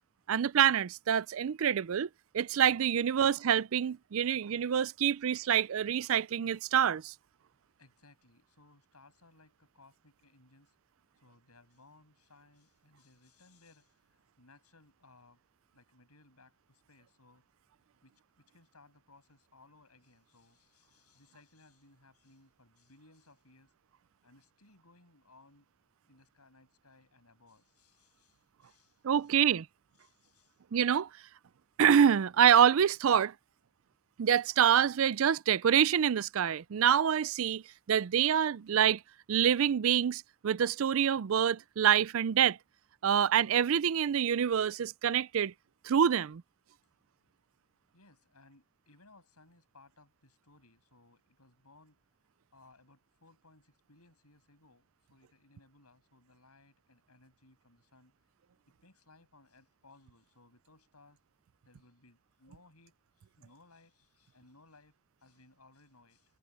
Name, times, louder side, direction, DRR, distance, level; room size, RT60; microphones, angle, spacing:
voice 1, 0.3-2.1 2.3-7.1 29.0-29.7 30.7-31.1 31.8-33.3 34.2-37.6 37.9-39.0 39.3-42.6 43.0-45.5 45.8-46.4, right 8 dB, 65° right, 0.4 m, -26 dB
voice 2, 7.8-10.7 11.2-15.4 15.7-17.5 18.0-23.7 24.2-25.7 26.1-29.4 30.0-30.6 47.9-52.0 52.5-58.1 58.8-61.2 61.6-66.4, left 2 dB, 85° left, 8.0 m, -63 dB
head